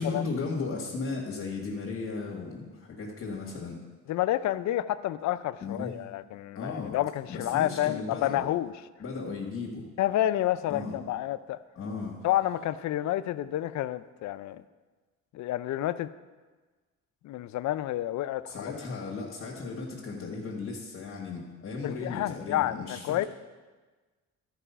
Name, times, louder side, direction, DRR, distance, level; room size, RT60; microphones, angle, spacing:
voice 1, 0.0-3.8 5.6-5.9 6.5-6.9 7.3-8.5 9.0-9.9 10.7-11.0 11.7-12.2 18.5-23.3, left 4 dB, 50° left, -4 dB, 1.7 m, -35 dB
voice 2, 4.1-8.7 10.0-11.6 12.2-14.6 15.3-16.1 17.2-18.7 21.8-23.3, left 13 dB, 70° left, 15 dB, 0.5 m, -29 dB
12.5 x 4.9 x 5.6 m, 1.3 s
cardioid pair, 90°, 30 cm